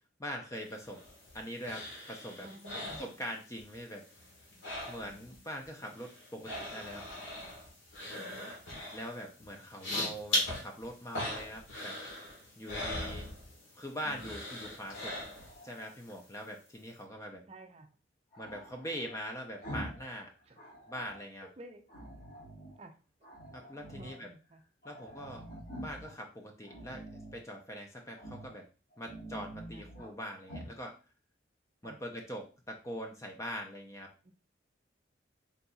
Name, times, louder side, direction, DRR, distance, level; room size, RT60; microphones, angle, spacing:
voice 1, 0.2-1.0 1.3-2.5 3.0-4.1 4.9-7.0 8.9-12.0 12.6-13.3 13.7-15.2 15.6-17.4 18.4-20.3 20.9-21.5 23.5-24.3 24.8-25.5 25.8-28.7 29.0-31.0 31.8-34.1, equal, 15° left, 2 dB, 0.5 m, -42 dB
sound 1, 0.7-3.7 4.0-5.4 5.6-13.8 14.1-15.7 16.1-16.2, left 1 dB, 85° left, 1.5 m, -39 dB
voice 2, 2.4-3.0 6.4-6.5 8.1-8.5 12.9-13.3 17.5-17.9 20.5-20.6 21.4-21.9 22.8-23.0 23.7-24.6 29.7-29.8 31.8-32.0 34.2-34.3, right 1 dB, 35° right, 6 dB, 0.5 m, -52 dB
Growling, 13.9-16.0 18.3-20.1 20.4-21.3 21.9-22.8 23.2-24.2 24.5-24.6 24.8-26.1 26.6-27.4 28.1-28.6 28.9-30.1 30.4-30.8, right 1 dB, 45° left, 1.6 m, -47 dB
4.0 x 3.9 x 2.3 m, 0.34 s
head